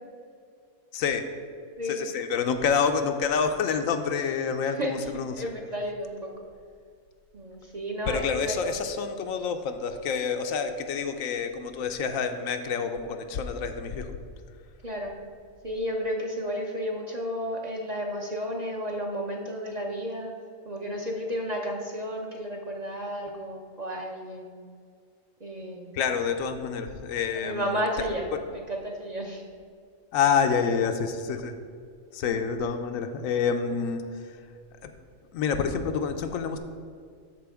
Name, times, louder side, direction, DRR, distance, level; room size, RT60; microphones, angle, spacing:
voice 1, 0.9-1.3 1.8-5.3 8.1-14.1 25.9-27.8 28.3-28.4 30.1-31.5 32.1-34.0 34.8-34.9 35.3-36.6, left 6 dB, 85° left, 7 dB, 1.0 m, -27 dB
voice 2, 1.8-2.1 4.8-4.9 5.3-6.3 7.3-8.8 14.8-15.1 15.6-20.3 20.7-24.5 25.4-25.9 27.3-29.4 32.2-32.4, equal, 40° right, 0 dB, 0.6 m, -32 dB
12.5 x 4.5 x 3.5 m, 2.2 s
omnidirectional pair, 1.4 m